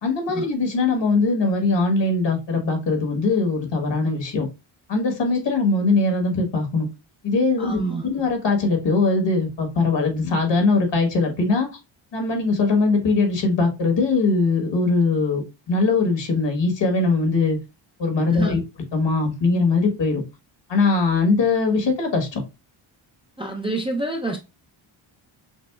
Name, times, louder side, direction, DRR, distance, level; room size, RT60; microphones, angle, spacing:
voice 1, 0.0-4.4 4.9-6.9 7.2-11.7 12.1-15.4 15.7-17.6 18.0-18.6 18.9-20.2 20.7-22.4, left 3 dB, 60° left, 1.4 m, -21 dB
voice 2, 7.6-8.0 18.4-18.6 23.4-24.4, right 2 dB, 10° right, 0.4 m, -27 dB
6.0 x 2.0 x 2.3 m
wide cardioid pair, 120°, 50 cm